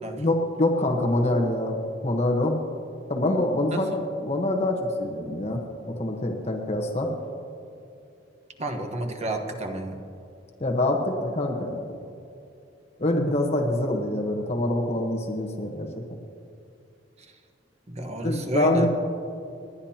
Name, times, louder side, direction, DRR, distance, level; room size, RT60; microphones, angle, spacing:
voice 1, 0.2-2.6 3.1-7.1 10.6-11.8 13.0-16.2 18.2-18.9, left 1 dB, 35° left, 2 dB, 1.2 m, -25 dB
voice 2, 8.6-10.0 17.2-17.3 17.9-18.9, right 1 dB, 35° right, 4 dB, 1.2 m, -30 dB
29.5 x 10.5 x 2.9 m, 2.6 s
head